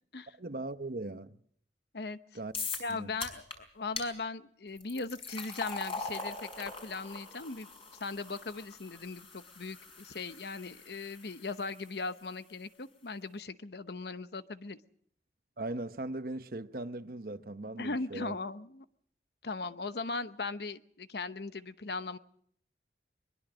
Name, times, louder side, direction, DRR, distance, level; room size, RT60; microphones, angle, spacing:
voice 1, 0.4-1.4 2.3-2.5 2.9-3.1 15.6-18.4, right 2 dB, 55° right, 0.9 m, -39 dB
sound 1, 2.5-2.9 3.2-3.6 4.0-4.1 4.8-11.9, left 4 dB, 30° left, 4.9 m, -42 dB
voice 2, 2.8-7.7 8.0-14.8 17.8-18.9 19.4-22.2, left 3 dB, 70° left, 0.9 m, -38 dB
22.5 x 21.0 x 6.3 m
head